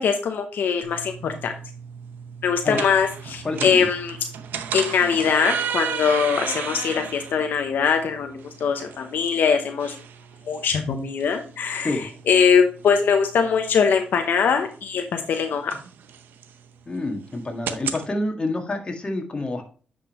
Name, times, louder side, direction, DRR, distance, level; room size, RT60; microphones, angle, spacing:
voice 1, 0.0-1.5 2.4-4.2 4.7-10.0 10.5-15.7, left 6 dB, 75° left, 5 dB, 0.8 m, -22 dB
sound 1, 0.8-18.1, right 8 dB, 90° right, 0.7 m, -35 dB
voice 2, 3.4-3.9 11.8-12.0 16.9-19.6, left 2 dB, 30° left, 3 dB, 1.8 m, -28 dB
9.7 x 5.3 x 3.1 m, 0.40 s
cardioid pair, 95°, 3 cm